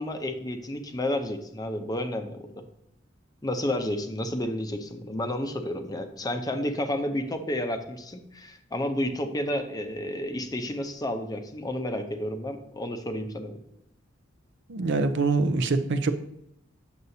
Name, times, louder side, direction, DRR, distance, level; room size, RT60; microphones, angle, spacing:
voice 1, 0.0-2.7 3.4-13.6, left 1 dB, 20° left, 6 dB, 0.6 m, -31 dB
voice 2, 14.7-16.1, right 3 dB, 65° right, 10 dB, 0.5 m, -24 dB
7.9 x 6.7 x 2.7 m, 0.78 s
head